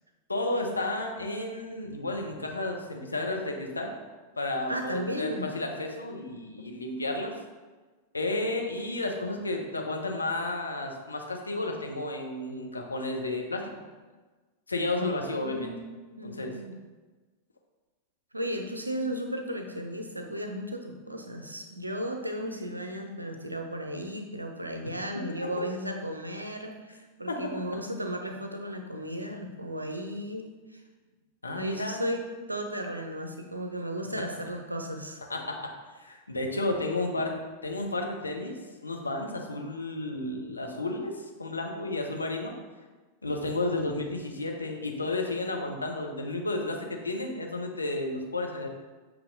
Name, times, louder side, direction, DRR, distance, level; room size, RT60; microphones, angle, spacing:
voice 1, 0.3-3.9 4.4-7.3 8.1-13.7 14.7-15.7 16.2-16.5 24.8-24.9 27.3-27.5 31.4-32.0 35.3-38.6 38.8-42.5 43.2-48.7, left 2 dB, 80° left, 2 dB, 0.6 m, -32 dB
voice 2, 4.7-5.5 15.0-16.7 18.3-30.8 31.5-32.2 32.5-35.2, equal, 85° right, 4 dB, 0.5 m, -35 dB
6.7 x 2.9 x 2.6 m, 1.3 s
figure-of-eight pair, 90°, 0 cm